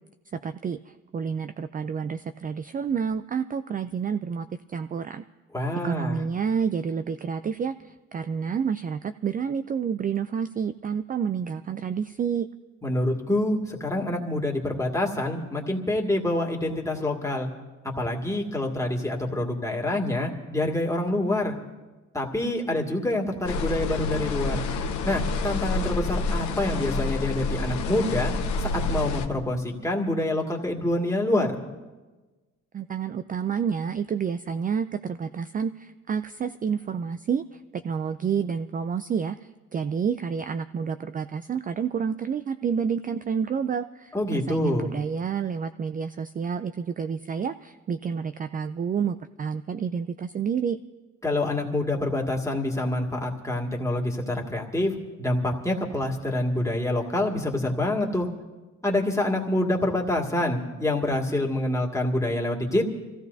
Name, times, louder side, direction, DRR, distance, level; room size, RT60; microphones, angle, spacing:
voice 1, 0.3-5.2 5.8-12.5 32.7-50.8, right 6 dB, 30° right, 11 dB, 0.4 m, -29 dB
voice 2, 5.5-6.2 12.8-17.5 18.0-21.5 22.1-24.6 25.0-28.3 28.6-31.6 44.1-44.9 51.2-58.3 58.8-62.9, left 1 dB, 10° left, -1 dB, 2.1 m, -26 dB
sound 1, 23.5-29.3, left 3 dB, 70° left, 1.1 m, -28 dB
25.5 x 16.0 x 2.7 m, 1.2 s
cardioid pair, 90°, 30 cm